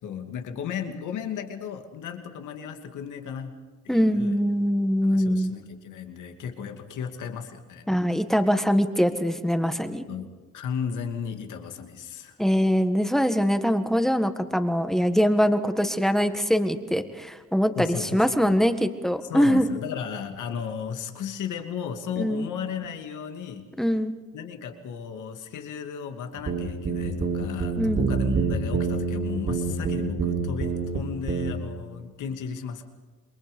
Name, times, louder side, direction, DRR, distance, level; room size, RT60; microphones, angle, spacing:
voice 1, 0.0-3.6 3.8-4.4 5.0-7.9 10.1-10.3 10.5-12.4 17.7-18.6 19.3-23.7 24.3-32.9, left 7 dB, 80° left, 5 dB, 2.5 m, -35 dB
voice 2, 3.9-5.5 7.9-10.0 12.4-19.6 22.2-22.5 23.8-24.1 27.8-28.1, equal, ahead, 8 dB, 1.7 m, -23 dB
sound 1, 26.4-31.0 31.3-31.5, right 5 dB, 45° right, 3.6 m, -26 dB
28.0 x 22.5 x 5.4 m, 1.3 s
cardioid pair, 90°, 30 cm